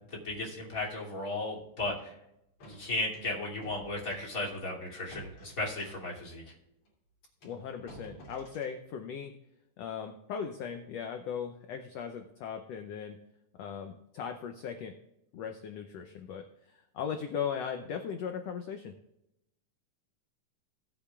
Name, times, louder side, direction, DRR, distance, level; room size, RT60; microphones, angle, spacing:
voice 1, 0.1-2.2 2.6-6.4, left 2 dB, 25° left, -4 dB, 2.9 m, -35 dB
sound 1, 0.8-1.0 2.0-2.1 2.6-6.2 6.9-7.0 7.4-8.8, right 1 dB, 50° left, 3.7 m, -53 dB
voice 2, 7.4-9.3 9.8-13.2 13.6-15.0 15.3-18.9, left 7 dB, 90° left, 6 dB, 1.4 m, -38 dB
17.5 x 8.5 x 2.4 m, 0.84 s
omnidirectional pair, 3.8 m